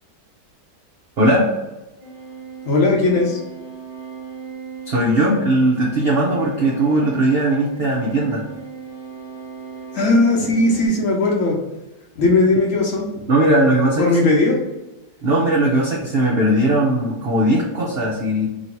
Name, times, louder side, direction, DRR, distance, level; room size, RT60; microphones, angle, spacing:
sound 1, 2.0-10.9, right 6 dB, 20° right, 1.2 m, -37 dB
voice 1, 2.7-3.4 9.9-11.6 12.2-13.1 14.0-14.6, left 2 dB, 60° left, -2 dB, 1.0 m, -17 dB
voice 2, 4.9-8.4 13.3-14.1 15.2-18.5, right 1 dB, 65° right, -3 dB, 0.6 m, -18 dB
3.0 x 2.8 x 4.4 m, 1.0 s
omnidirectional pair, 1.8 m